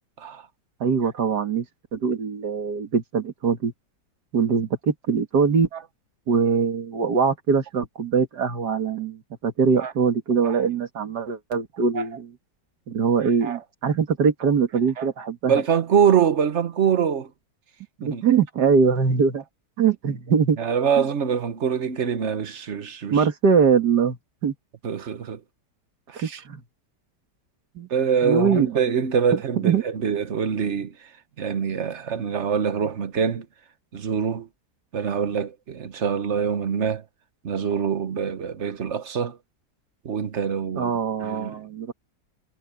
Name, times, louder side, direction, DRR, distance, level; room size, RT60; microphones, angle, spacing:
voice 1, 0.8-1.7 1.9-3.7 4.3-5.7 6.3-12.3 12.9-15.5 18.0-19.4 19.8-20.6 21.0-21.1 23.1-24.5 26.2-26.6 27.8-27.9 28.2-28.8 29.6-29.8 40.8-41.9, right 6 dB, 70° right, 2.4 m, -22 dB
voice 2, 15.5-17.3 18.0-18.2 20.6-23.3 24.8-25.4 26.1-26.4 27.9-31.1 31.4-33.5 33.9-34.5 34.9-37.0 37.4-39.4 40.0-40.9 41.2-41.6, right 7 dB, 45° right, 1.3 m, -24 dB
omnidirectional pair, 1.8 m